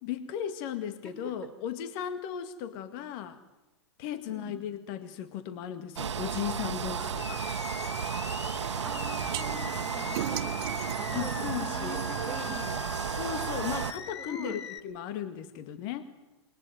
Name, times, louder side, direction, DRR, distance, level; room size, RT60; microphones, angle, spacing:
voice 1, 0.0-3.4 4.0-7.4 11.1-12.0 13.1-16.0, left 9 dB, 50° left, 10 dB, 1.9 m, -36 dB
voice 2, 1.0-1.4 4.3-4.6 8.8-13.0 14.2-14.6, right 1 dB, 5° left, 7 dB, 5.5 m, -43 dB
sound 1, 6.0-13.9, right 7 dB, 80° right, 1.3 m, -33 dB
Animal, 6.8-14.8, left 8 dB, 70° left, 1.9 m, -42 dB
sound 2, 9.3-9.4 10.1-12.3, right 12 dB, 55° right, 1.6 m, -37 dB
29.0 x 21.5 x 9.4 m, 1.1 s
hypercardioid pair, 110°, 15 cm